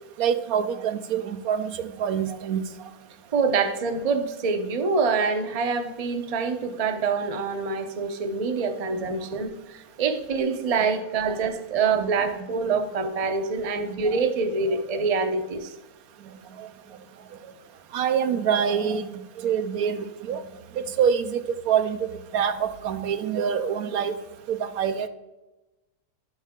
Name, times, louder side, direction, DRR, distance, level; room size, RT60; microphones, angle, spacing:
voice 1, 0.2-2.6 8.9-9.1 12.0-12.1 14.7-14.8 17.9-19.1 19.4-20.4 21.0-21.4 21.7-22.0 22.3-24.1 24.5-25.1, right 8 dB, 80° right, 10 dB, 1.1 m, -25 dB
voice 2, 3.3-15.7, right 4 dB, 35° right, 6 dB, 0.6 m, -25 dB
11.5 x 6.5 x 3.6 m, 1.1 s
omnidirectional pair, 1.5 m